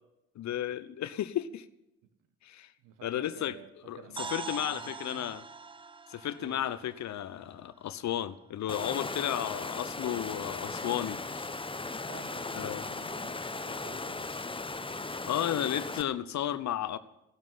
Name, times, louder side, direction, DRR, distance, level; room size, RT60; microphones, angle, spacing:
voice 1, 0.4-1.7 2.4-2.7 3.0-3.5 3.9-5.4 6.1-11.5 12.5-12.8 15.2-17.0, left 11 dB, 55° left, 14 dB, 0.9 m, -33 dB
voice 2, 2.8-5.3 6.4-6.6 12.1-14.3, right 8 dB, 65° right, 10 dB, 1.5 m, -51 dB
sound 1, 4.2-8.1, right 4 dB, 15° right, 0.6 m, -43 dB
Water, 8.7-16.0, left 3 dB, 15° left, 1.0 m, -37 dB
16.0 x 12.0 x 5.8 m, 0.88 s
hypercardioid pair, 40°, 34 cm